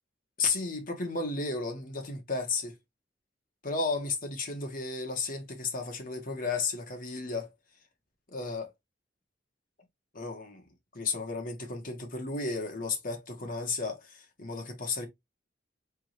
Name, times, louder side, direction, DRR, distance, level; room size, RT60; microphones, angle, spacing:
voice 1, 0.4-2.8 3.6-7.5 8.3-8.7 10.1-10.6 10.9-15.1, left 3 dB, 45° left, 1.4 m, -33 dB
3.8 x 3.7 x 3.0 m
head